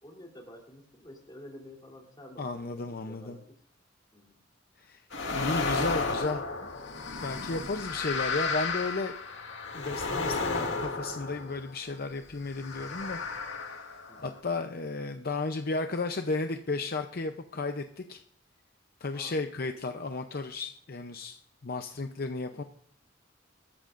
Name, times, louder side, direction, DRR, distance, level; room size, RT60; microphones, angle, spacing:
voice 1, 0.0-3.6 4.1-4.4 7.9-8.2 14.1-14.3 19.1-19.4 22.5-22.6, left 1 dB, 25° left, 0 dB, 3.4 m, -50 dB
voice 2, 2.4-3.4 4.8-5.0 5.3-6.7 7.2-9.1 9.7-13.2 13.6-13.8 14.2-18.2 19.0-22.6, left 3 dB, 55° left, 6 dB, 0.7 m, -34 dB
sound 1, 5.1-11.9 12.5-14.4, left 4 dB, 75° left, 1.9 m, -33 dB
24.5 x 13.5 x 2.6 m, 0.65 s
head